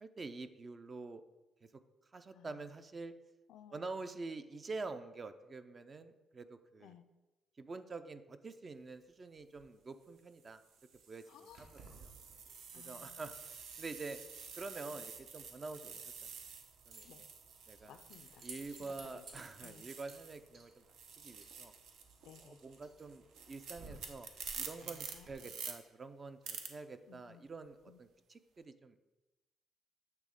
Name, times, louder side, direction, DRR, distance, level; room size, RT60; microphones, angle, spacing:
voice 1, 0.0-1.2 2.1-3.1 3.7-6.9 7.6-10.6 11.1-11.2 12.0-12.4 12.8-14.2 14.5-16.3 16.9-17.3 17.7-18.0 18.4-20.8 21.2-21.7 22.4-24.3 24.6-29.0, right 3 dB, 35° right, 10 dB, 0.4 m, -47 dB
voice 2, 3.5-4.2 6.8-7.0 11.3-11.9 12.7-13.2 14.9-15.0 17.0-17.3 17.8-19.2 19.6-19.9 22.2-22.6 24.8-25.5 27.1-27.4 27.9-28.0, left 9 dB, 80° left, 10 dB, 0.4 m, -59 dB
sound 1, 9.4-9.6 10.4-20.5 20.8-25.7 26.4-26.7, right 6 dB, 85° right, 0.6 m, -49 dB
Keys jangling, 11.5-25.3, right 3 dB, 65° right, 1.1 m, -59 dB
8.2 x 3.2 x 3.6 m, 1.1 s
cardioid pair, 90°, 0 cm